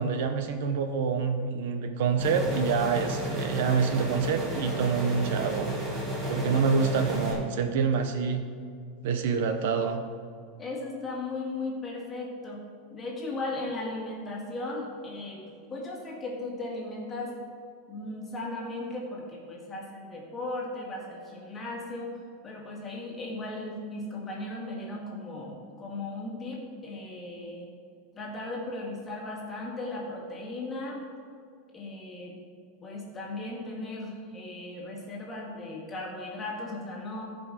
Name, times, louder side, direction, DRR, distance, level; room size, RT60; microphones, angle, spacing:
voice 1, 0.0-5.7 6.3-8.4 9.0-10.0, right 6 dB, 65° right, 7 dB, 0.8 m, -27 dB
sound 1, 2.2-7.3, equal, 20° right, 2.2 m, -32 dB
voice 2, 10.6-12.6 12.9-17.3 17.9-22.1 22.4-27.6 28.1-31.1 31.7-32.3 32.8-37.2, left 2 dB, 15° left, -3 dB, 1.9 m, -37 dB
14.5 x 5.2 x 4.9 m, 2.3 s
supercardioid pair, 170°, 0 cm